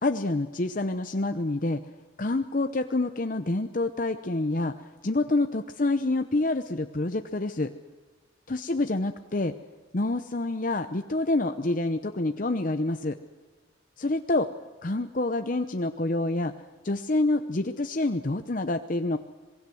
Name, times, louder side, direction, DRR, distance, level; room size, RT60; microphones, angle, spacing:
voice 1, 0.0-1.8 2.2-7.7 8.5-9.5 9.9-13.2 14.0-14.5 14.8-16.5 16.8-19.2, left 2 dB, 40° left, 8 dB, 0.8 m, -27 dB
27.0 x 19.5 x 7.8 m, 1.3 s
head